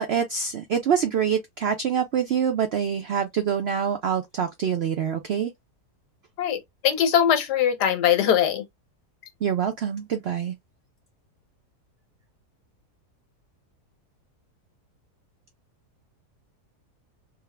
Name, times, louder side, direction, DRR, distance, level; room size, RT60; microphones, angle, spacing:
voice 1, 0.0-5.5 9.4-10.5, right 8 dB, 75° right, 0.5 m, -25 dB
voice 2, 6.4-8.6, left 9 dB, 85° left, 1.4 m, -21 dB
3.5 x 2.1 x 3.3 m
omnidirectional pair, 1.7 m